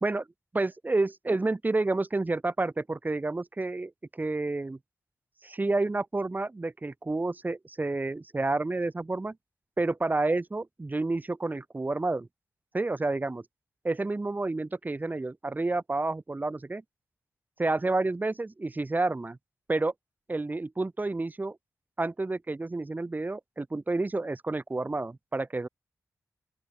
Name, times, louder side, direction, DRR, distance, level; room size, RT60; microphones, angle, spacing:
voice 1, 0.5-4.8 5.4-9.4 9.8-12.3 12.7-13.4 13.8-16.8 17.6-19.4 19.7-19.9 20.3-21.6 22.0-25.7, right 2 dB, 25° right, 2.0 m, -29 dB
open air
cardioid pair, 70°, 6 cm